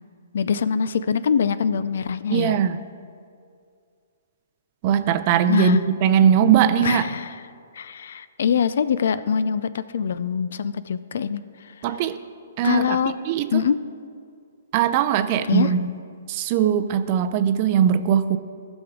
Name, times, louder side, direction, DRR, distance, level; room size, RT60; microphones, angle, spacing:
voice 1, 0.3-2.6 5.5-5.8 6.8-7.4 7.7-11.7 12.6-13.1 13.5-13.8 15.5-15.7, left 7 dB, 60° left, 14 dB, 0.4 m, -23 dB
voice 2, 2.3-2.8 4.8-7.0 11.8-12.2 12.6-13.0 13.3-13.6 14.7-15.9 16.3-18.4, right 9 dB, 40° right, 11 dB, 0.5 m, -20 dB
15.5 x 6.2 x 3.7 m, 2.2 s
figure-of-eight pair, 125°, 0 cm